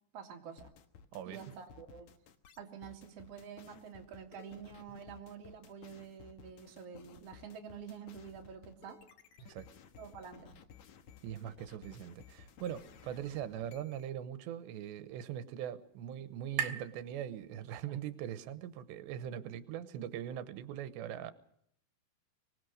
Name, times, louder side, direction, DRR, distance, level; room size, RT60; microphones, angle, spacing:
voice 1, 0.1-0.7 1.3-2.1 2.6-9.0 10.0-10.5, right 7 dB, 40° right, 1 dB, 2.8 m, -48 dB
sound 1, 0.6-14.1, left 7 dB, 60° left, 2.0 m, -57 dB
voice 2, 1.1-1.4 9.4-9.7 11.2-21.3, right 10 dB, 90° right, 12 dB, 3.2 m, -41 dB
sound 2, 14.3-18.0, right 9 dB, 70° right, 3.0 m, -44 dB
24.5 x 19.5 x 6.5 m, 0.70 s
omnidirectional pair, 4.9 m